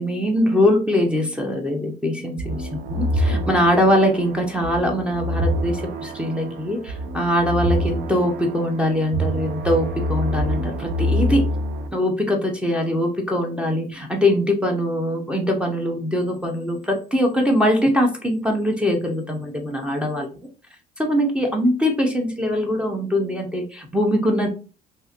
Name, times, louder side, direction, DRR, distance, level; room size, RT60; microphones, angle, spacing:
voice 1, 0.0-11.4 11.9-20.5 21.0-24.5, equal, 5° right, -1 dB, 0.5 m, -22 dB
sound 1, 2.4-11.9, equal, 80° right, 0.5 m, -26 dB
2.8 x 2.5 x 2.4 m, 0.36 s
cardioid pair, 110°, 17 cm